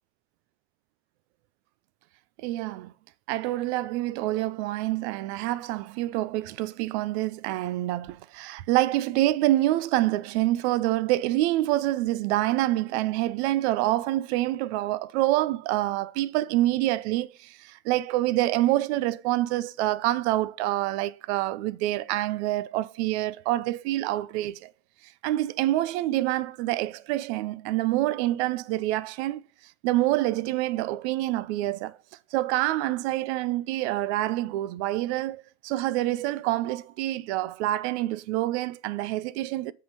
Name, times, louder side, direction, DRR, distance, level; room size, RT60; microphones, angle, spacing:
voice 1, 2.4-2.9 3.3-24.7 25.2-29.5 29.8-32.0 32.3-39.7, right 16 dB, 80° right, 0.6 m, -26 dB
7.5 x 3.8 x 5.3 m
hypercardioid pair, 75°, 33 cm